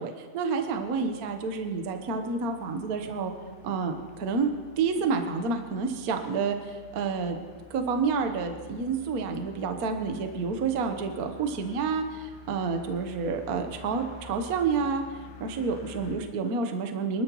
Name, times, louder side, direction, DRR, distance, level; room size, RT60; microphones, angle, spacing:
voice 1, 0.0-3.3 3.6-4.5 4.8-7.4 7.7-15.0 15.4-17.2, right 5 dB, 90° right, 5 dB, 0.8 m, -29 dB
sound 1, 0.5-16.2, left 4 dB, 80° left, 2.8 m, -49 dB
24.5 x 12.5 x 3.1 m, 1.5 s
omnidirectional pair, 3.3 m